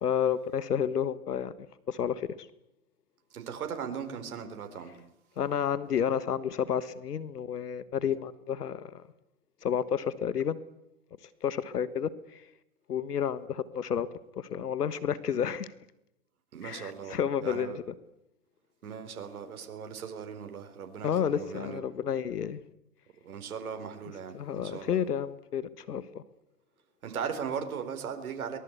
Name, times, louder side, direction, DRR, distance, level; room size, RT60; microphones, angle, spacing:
voice 1, 0.0-1.5 1.9-2.3 5.4-9.0 9.6-10.6 11.4-12.1 12.9-14.1 14.4-15.7 16.6-17.7 21.0-22.6 24.3-25.6 25.9-26.2, left 8 dB, 85° left, 1.5 m, -30 dB
voice 2, 3.3-4.9 16.5-17.8 18.8-21.9 23.2-25.0 27.0-28.6, right 7 dB, 65° right, 4.3 m, -38 dB
23.5 x 20.0 x 8.2 m
hypercardioid pair, 135°, 46 cm